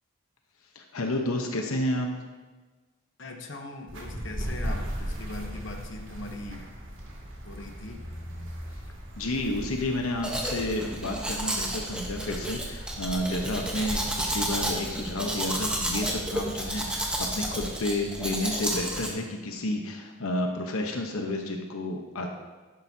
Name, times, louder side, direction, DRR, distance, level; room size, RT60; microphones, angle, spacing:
voice 1, 0.7-2.1 9.2-22.4, left 1 dB, 75° left, 3 dB, 1.0 m, -31 dB
voice 2, 3.2-6.7 7.4-8.0, left 2 dB, 55° left, 3 dB, 1.0 m, -40 dB
sound 1, 3.9-17.7, equal, 60° right, 2.4 m, -38 dB
Domestic sounds home sounds, 10.2-19.1, right 1 dB, 5° right, 1.0 m, -31 dB
11.5 x 10.5 x 2.8 m, 1.3 s
head